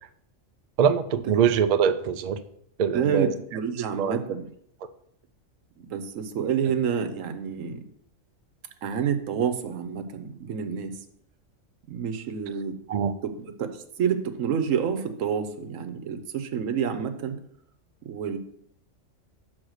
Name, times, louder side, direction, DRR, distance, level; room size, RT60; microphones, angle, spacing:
voice 1, 0.8-2.4 2.8-3.3 4.0-4.2 12.9-13.1, right 7 dB, 70° right, 10 dB, 0.4 m, -23 dB
voice 2, 2.9-4.5 5.8-7.8 8.8-11.0 11.9-12.8 13.2-17.4 18.0-18.4, right 7 dB, 85° right, 9 dB, 1.1 m, -28 dB
6.4 x 4.1 x 6.3 m, 0.68 s
omnidirectional pair, 1.3 m